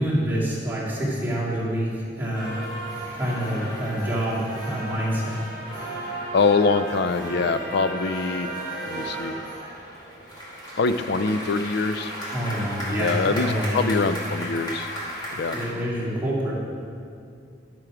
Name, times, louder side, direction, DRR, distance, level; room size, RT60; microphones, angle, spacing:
voice 1, 0.0-2.5 3.1-5.4 12.3-13.9 15.5-16.5, equal, 10° right, -8 dB, 2.3 m, -27 dB
sound 1, 2.3-15.7, right 1 dB, 25° left, 2.1 m, -34 dB
voice 2, 6.3-8.5 8.9-9.4 10.8-12.1 13.0-14.9 15.3-15.6, left 4 dB, 60° left, 11 dB, 0.4 m, -24 dB
11.0 x 6.1 x 4.9 m, 2.4 s
head